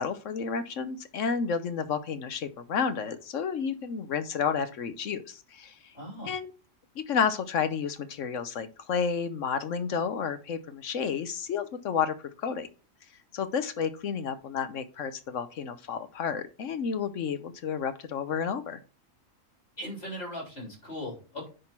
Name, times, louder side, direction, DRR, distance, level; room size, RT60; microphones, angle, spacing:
voice 1, 0.0-5.7 6.2-6.5 7.0-12.7 13.3-18.8, left 6 dB, 70° left, 11 dB, 1.2 m, -31 dB
voice 2, 5.9-6.3 19.8-21.5, left 1 dB, 50° left, -1 dB, 4.0 m, -38 dB
9.9 x 4.0 x 4.4 m, 0.33 s
omnidirectional pair, 1.4 m